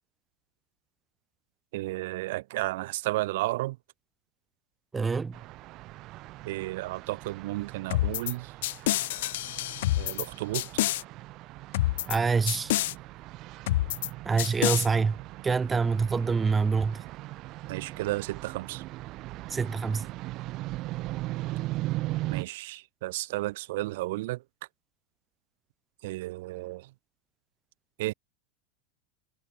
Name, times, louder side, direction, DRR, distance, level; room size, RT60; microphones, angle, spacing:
voice 1, 1.7-3.8 6.5-8.5 10.0-10.7 17.7-18.8 22.3-24.4 26.0-26.9 28.0-28.1, right 19 dB, 70° right, 2.1 m, -33 dB
voice 2, 4.9-5.4 12.1-12.7 14.2-15.2 15.4-17.0 19.5-20.0, right 5 dB, 20° right, 1.2 m, -26 dB
sound 1, 5.3-22.4, right 18 dB, 50° right, 6.8 m, -39 dB
sound 2, 7.9-8.3 8.6-10.3 10.5-11.0 11.7-12.2 12.5-12.9 13.7-14.1 14.4-14.9, left 16 dB, 75° left, 0.8 m, -27 dB
hypercardioid pair, 110°, 0 cm